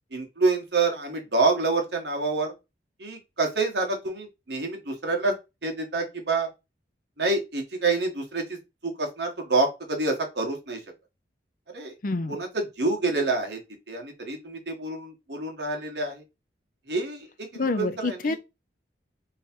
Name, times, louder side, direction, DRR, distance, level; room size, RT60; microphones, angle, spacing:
voice 1, 0.1-2.5 3.0-5.3 5.6-6.5 7.2-10.8 11.7-11.9 12.3-13.6 13.9-16.2 16.9-18.4, right 3 dB, 70° right, 1.4 m, -27 dB
voice 2, 12.0-12.4 17.5-18.4, left 3 dB, 50° left, 0.5 m, -27 dB
3.5 x 3.2 x 4.4 m
head